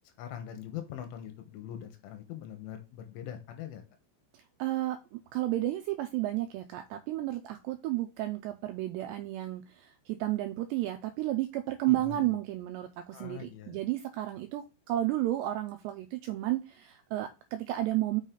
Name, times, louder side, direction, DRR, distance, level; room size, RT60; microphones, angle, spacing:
voice 1, 0.2-3.8 11.9-12.3 13.1-13.8, left 10 dB, 85° left, 6 dB, 3.7 m, -42 dB
voice 2, 4.3-18.2, right 15 dB, 90° right, 7 dB, 2.4 m, -32 dB
6.5 x 6.4 x 3.9 m, 0.29 s
omnidirectional pair, 5.6 m